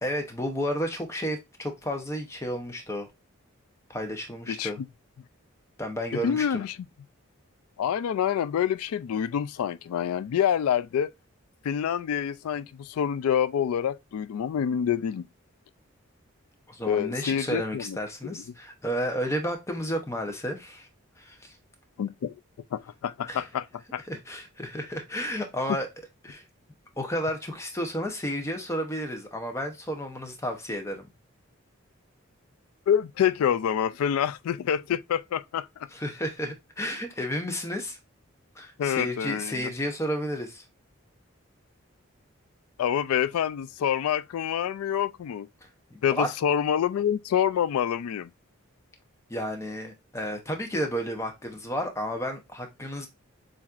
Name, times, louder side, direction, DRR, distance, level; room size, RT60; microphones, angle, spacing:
voice 1, 0.0-3.1 3.9-4.8 5.8-6.6 16.7-20.9 21.2-21.6 23.3-23.5 24.1-25.9 26.2-26.4 27.0-31.1 35.9-38.0 38.5-40.6 45.9-46.3 49.3-53.1, equal, 15° left, 0.7 m, -32 dB
voice 2, 6.2-6.8 7.8-11.1 11.6-15.3 16.8-18.0 22.0-22.3 22.7-23.6 23.9-24.0 32.9-35.9 38.8-39.6 42.8-45.5 46.0-48.3, left 8 dB, 85° left, 0.3 m, -27 dB
7.0 x 2.6 x 2.4 m
head